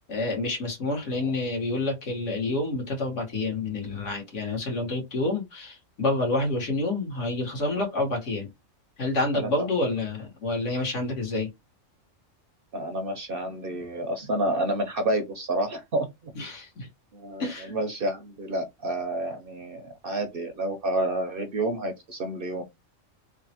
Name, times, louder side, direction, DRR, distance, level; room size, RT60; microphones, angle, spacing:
voice 1, 0.1-8.5 9.0-11.5 16.4-16.9 17.4-17.7, left 2 dB, 65° left, 1.7 m, -28 dB
voice 2, 12.7-16.3 17.1-22.6, right 1 dB, 55° right, 0.7 m, -29 dB
3.3 x 2.1 x 2.8 m
omnidirectional pair, 1.3 m